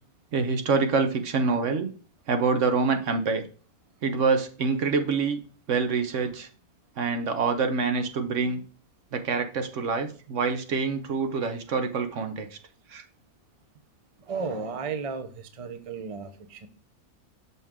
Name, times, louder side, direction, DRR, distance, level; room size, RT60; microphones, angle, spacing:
voice 1, 0.3-1.9 2.3-3.4 4.0-5.4 5.7-6.5 7.0-8.6 9.1-12.6 12.9-13.0, right 4 dB, 60° right, 7 dB, 1.2 m, -26 dB
voice 2, 14.3-16.7, right 5 dB, 40° right, 9 dB, 0.5 m, -34 dB
6.2 x 5.5 x 3.6 m, 0.38 s
omnidirectional pair, 1.6 m